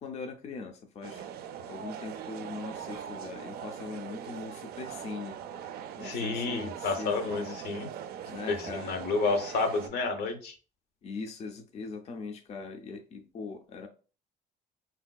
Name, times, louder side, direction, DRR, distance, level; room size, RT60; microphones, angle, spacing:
voice 1, 0.0-1.2 1.7-5.4 6.0-7.6 8.3-8.9 11.0-13.9, left 4 dB, 40° left, 4 dB, 0.4 m, -40 dB
sound 1, 1.0-9.9, right 8 dB, 65° right, 0.4 m, -41 dB
voice 2, 6.0-7.9 8.5-10.5, left 4 dB, 75° left, 6 dB, 0.7 m, -30 dB
3.7 x 2.6 x 2.2 m, 0.37 s
cardioid pair, 110°, 17 cm